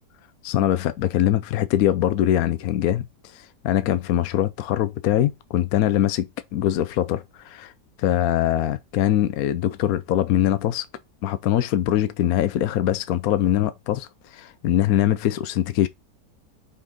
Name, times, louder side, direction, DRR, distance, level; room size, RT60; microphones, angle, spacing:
voice 1, 0.4-7.7 8.0-10.9 11.2-15.9, left 12 dB, 70° left, 0.9 m, -22 dB
5.6 x 4.5 x 3.7 m
omnidirectional pair, 1.8 m